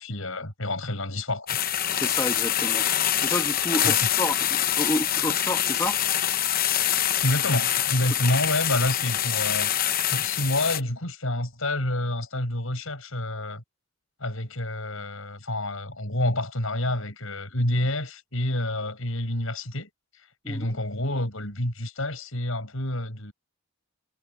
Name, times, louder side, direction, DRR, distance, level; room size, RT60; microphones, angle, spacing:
voice 1, 0.0-1.6 3.8-4.1 7.2-9.7 10.1-13.6 14.2-19.9 20.5-23.3, left 1 dB, 70° left, 7.4 m, -28 dB
sound 1, 1.5-10.8, left 11 dB, 40° left, 0.9 m, -25 dB
voice 2, 1.9-2.8 3.2-6.0 20.4-20.7, left 1 dB, 15° left, 1.8 m, -30 dB
head